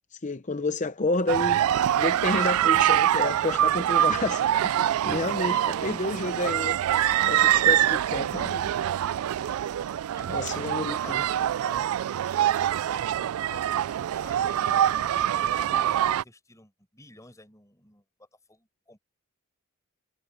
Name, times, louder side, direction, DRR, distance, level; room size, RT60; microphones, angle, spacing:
voice 1, 0.1-1.6 2.0-6.8 7.2-8.7 10.3-11.2, left 2 dB, 35° left, 0.7 m, -30 dB
sound 1, 1.3-16.2, right 11 dB, 85° right, 0.3 m, -24 dB
voice 2, 5.7-6.4 8.3-8.5 10.1-11.9 12.9-19.0, left 2 dB, 15° left, 4.9 m, -50 dB
head